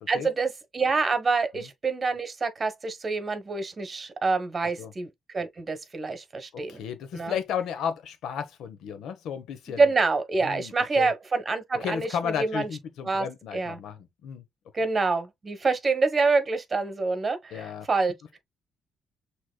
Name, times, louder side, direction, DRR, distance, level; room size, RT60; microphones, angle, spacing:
voice 1, 0.1-6.8 7.1-7.3 9.8-12.7 13.1-13.3 13.5-13.8 14.7-18.4, right 4 dB, 35° right, 1.3 m, -26 dB
voice 2, 6.5-9.9 10.4-11.1 11.8-14.4 17.5-17.9, left 8 dB, 80° left, 1.0 m, -33 dB
6.3 x 3.1 x 2.3 m
cardioid pair, 90°, 0 cm